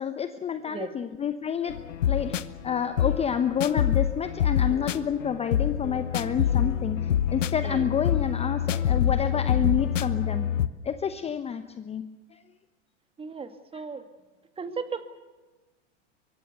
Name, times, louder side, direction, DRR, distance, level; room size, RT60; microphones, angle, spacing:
voice 1, 0.0-1.8 2.0-7.0 7.3-10.5 10.8-12.0 12.3-12.4, left 7 dB, 15° left, 10 dB, 0.9 m, -29 dB
sound 1, 1.7-10.7, left 9 dB, 80° left, 1.1 m, -26 dB
voice 2, 13.2-14.1 14.6-15.0, right 5 dB, 15° right, 10 dB, 2.0 m, -35 dB
23.5 x 23.0 x 6.8 m, 1.2 s
hypercardioid pair, 115°, 37 cm